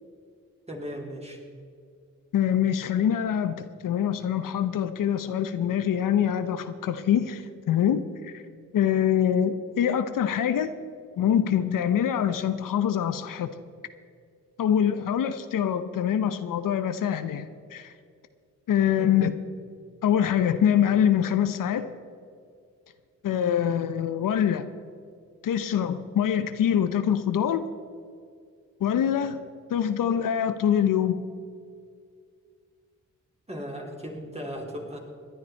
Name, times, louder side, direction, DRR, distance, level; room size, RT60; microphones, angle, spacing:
voice 1, 0.7-1.4 19.0-19.2 33.5-35.0, equal, 20° right, 0 dB, 3.6 m, -37 dB
voice 2, 2.3-8.4 8.7-10.7 11.2-13.6 14.6-17.9 18.7-19.3 20.0-21.9 23.2-24.7 25.4-27.6 28.8-29.4 29.7-31.2, left 9 dB, 75° left, 11 dB, 0.8 m, -24 dB
18.0 x 10.5 x 4.4 m, 2.2 s
supercardioid pair, 50°, 33 cm